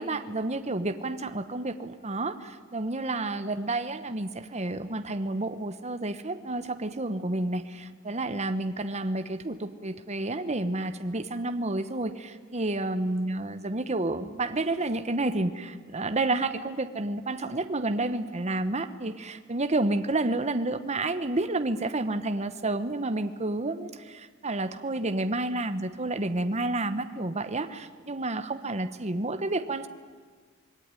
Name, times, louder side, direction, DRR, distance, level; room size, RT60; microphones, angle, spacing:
voice 1, 0.0-29.9, right 2 dB, 35° right, 9 dB, 1.2 m, -30 dB
26.0 x 20.5 x 9.9 m, 1.5 s
head